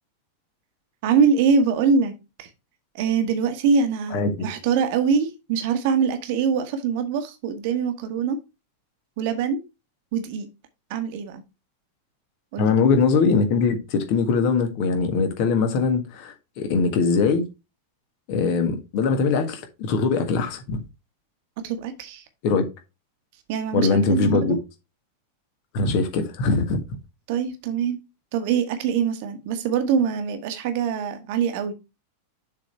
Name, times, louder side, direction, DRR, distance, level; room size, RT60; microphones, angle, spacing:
voice 1, 1.0-2.1 2.4-2.5 2.9-8.4 9.2-9.6 10.1-10.5 10.9-11.4 12.5-12.7 21.6-22.2 23.5-24.6 27.3-28.0 28.3-31.7, right 6 dB, 50° right, 1.3 m, -23 dB
voice 2, 12.6-17.5 18.3-20.8 22.4-22.6 23.7-24.6 25.7-26.8, left 4 dB, 45° left, 1.6 m, -21 dB
6.9 x 4.3 x 4.5 m
figure-of-eight pair, 90°, 0 cm